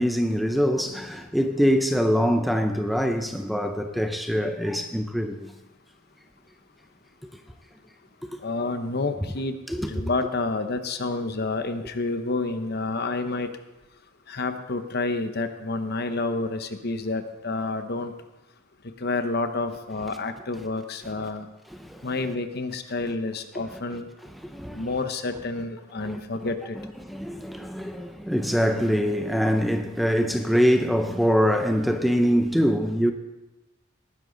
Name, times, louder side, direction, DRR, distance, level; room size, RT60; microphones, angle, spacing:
voice 1, 0.0-5.5 8.2-8.3 9.7-10.1 21.8-22.1 24.4-24.9 26.0-26.5 27.0-33.1, equal, ahead, 0.6 m, -24 dB
voice 2, 8.4-9.5 9.9-13.5 14.3-18.1 19.0-21.5 22.0-24.1 24.7-26.8, left 3 dB, 50° left, 0.9 m, -29 dB
19.0 x 10.5 x 3.9 m
head